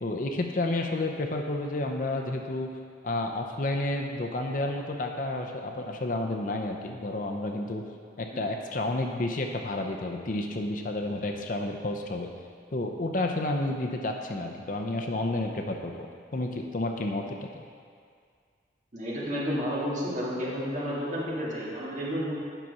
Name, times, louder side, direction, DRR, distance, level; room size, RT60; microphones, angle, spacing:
voice 1, 0.0-2.7 3.0-7.8 8.2-12.3 12.7-17.5, left 2 dB, 45° left, 3 dB, 0.6 m, -30 dB
voice 2, 18.9-22.3, equal, 40° right, -7 dB, 2.2 m, -31 dB
9.1 x 5.9 x 5.4 m, 2.1 s
head